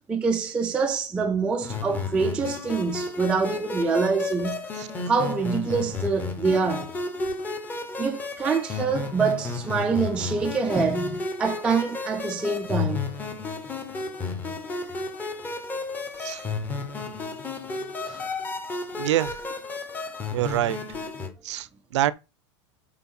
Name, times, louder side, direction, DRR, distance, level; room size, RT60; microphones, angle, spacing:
voice 1, 0.1-4.6 5.1-6.9 8.0-13.1 18.0-18.3, right 4 dB, 5° right, 0.4 m, -25 dB
sound 1, 1.6-21.3, left 4 dB, 10° left, 0.8 m, -32 dB
voice 2, 19.0-19.3 20.3-20.8 21.4-21.7 21.9-22.1, right 13 dB, 85° right, 0.7 m, -24 dB
6.8 x 4.5 x 5.4 m
supercardioid pair, 180°, 15 cm